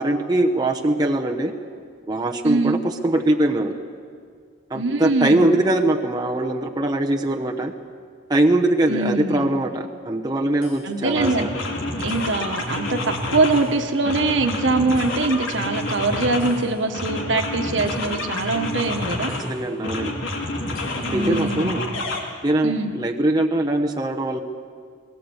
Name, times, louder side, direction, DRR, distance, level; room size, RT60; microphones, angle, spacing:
voice 1, 0.0-1.5 2.1-2.8 3.0-3.7 4.7-7.7 8.3-11.5 19.4-20.2 21.1-21.8 22.4-24.4, right 1 dB, 20° right, 2 dB, 0.9 m, -21 dB
voice 2, 2.4-2.8 4.7-5.5 8.9-9.5 10.8-11.5 12.0-19.3 21.0-21.8 22.6-22.9, right 3 dB, 75° right, 5 dB, 1.4 m, -23 dB
sound 1, 10.6-10.8 11.1-13.7 14.0-16.6 16.9-19.5 19.8-22.2, left 2 dB, 90° left, 3.0 m, -28 dB
20.0 x 18.0 x 8.0 m, 2.1 s
head